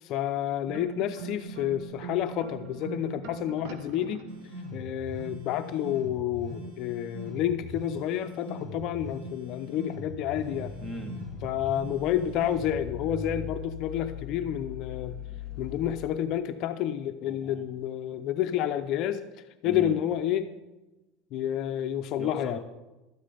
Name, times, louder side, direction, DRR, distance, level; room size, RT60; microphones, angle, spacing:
voice 1, 0.0-4.3 4.7-10.7 11.4-15.1 15.6-20.5 21.3-22.6, left 11 dB, 45° left, 8 dB, 0.6 m, -30 dB
sound 1, 0.7-4.7, right 7 dB, 60° right, 1.1 m, -42 dB
sound 2, 4.3-12.8, equal, 45° right, 2.0 m, -41 dB
sound 3, 10.0-16.0, left 6 dB, 10° left, 1.3 m, -41 dB
voice 2, 10.8-11.1 17.2-17.8 19.6-20.0 22.2-22.6, right 1 dB, 10° right, 4 dB, 1.4 m, -40 dB
12.5 x 9.5 x 5.1 m, 1.1 s
cardioid pair, 160°, 0 cm